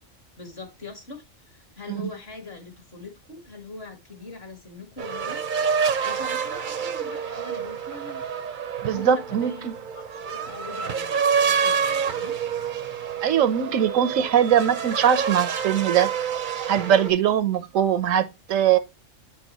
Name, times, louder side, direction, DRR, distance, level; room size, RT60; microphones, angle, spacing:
voice 1, 0.4-5.4 6.0-8.2 8.9-12.4, left 2 dB, 50° left, 2.0 m, -41 dB
sound 1, 5.0-17.1, right 6 dB, 50° right, 0.7 m, -27 dB
voice 2, 8.8-9.7 13.2-16.1 16.7-18.8, right 9 dB, 80° right, 1.1 m, -21 dB
8.6 x 4.6 x 3.0 m
omnidirectional pair, 1.3 m